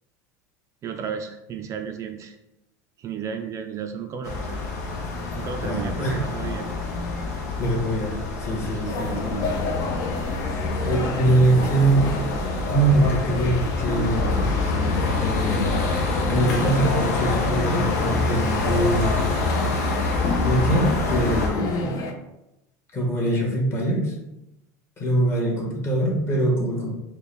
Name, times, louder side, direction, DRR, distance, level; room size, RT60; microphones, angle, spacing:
voice 1, 0.8-2.4 3.0-4.6 5.3-6.7 8.7-9.2, right 7 dB, 35° right, 6 dB, 0.3 m, -34 dB
sound 1, 4.2-21.5, left 3 dB, 90° left, 0.8 m, -27 dB
voice 2, 5.6-6.2 7.6-9.5 10.8-12.1 12.6-16.0 16.2-19.2 20.4-22.0 22.9-24.1 25.0-26.9, right 1 dB, 30° left, -3 dB, 1.3 m, -23 dB
sound 2, 6.0-12.5, left 2 dB, 10° left, 0.9 m, -40 dB
sound 3, 8.9-22.1, left 4 dB, 45° left, 0.6 m, -30 dB
4.5 x 2.2 x 3.3 m, 0.91 s
supercardioid pair, 115°, 9 cm